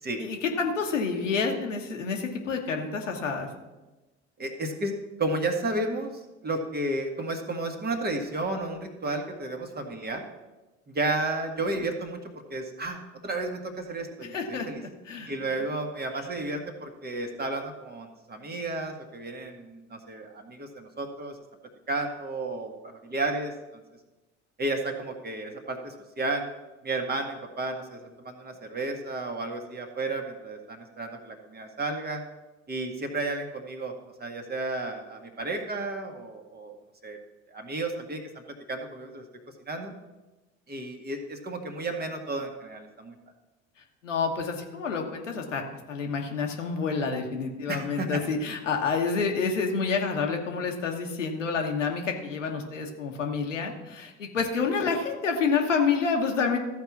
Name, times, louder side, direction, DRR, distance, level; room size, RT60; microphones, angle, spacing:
voice 1, 0.2-3.5 14.3-14.7 15.1-15.3 44.0-45.6 45.9-56.6, left 5 dB, 80° left, 2 dB, 1.3 m, -28 dB
voice 2, 4.4-6.1 6.4-10.2 10.9-14.8 15.3-21.4 21.9-23.8 24.6-26.5 26.8-32.2 32.7-33.9 34.2-36.7 37.0-37.2 37.5-38.2 38.7-39.2 39.7-39.9 40.7-43.2 47.7-48.2, right 2 dB, 25° right, 4 dB, 1.6 m, -32 dB
13.5 x 4.7 x 7.1 m, 1.1 s
figure-of-eight pair, 60°, 37 cm